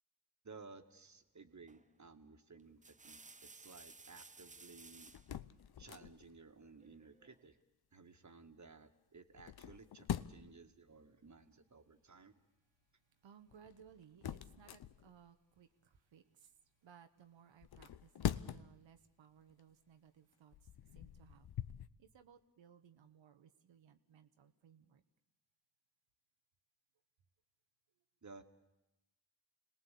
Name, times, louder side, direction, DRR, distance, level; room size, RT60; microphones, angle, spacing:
voice 1, 0.4-5.1 5.8-7.6 7.9-12.3 28.2-28.4, right 4 dB, 35° right, 7 dB, 2.1 m, -57 dB
sound 1, 1.7-2.0 2.6-5.3 6.8-7.4, right 3 dB, 15° right, 0.8 m, -58 dB
sound 2, 5.1-6.4 9.3-10.6 13.5-15.3 17.6-18.9 19.4-19.6 20.3-21.9, left 10 dB, 50° left, 0.9 m, -43 dB
voice 2, 13.2-16.5 16.8-21.5 22.0-25.0, right 8 dB, 65° right, 8 dB, 1.4 m, -63 dB
26.0 x 18.5 x 8.5 m, 0.93 s
hypercardioid pair, 45°, 49 cm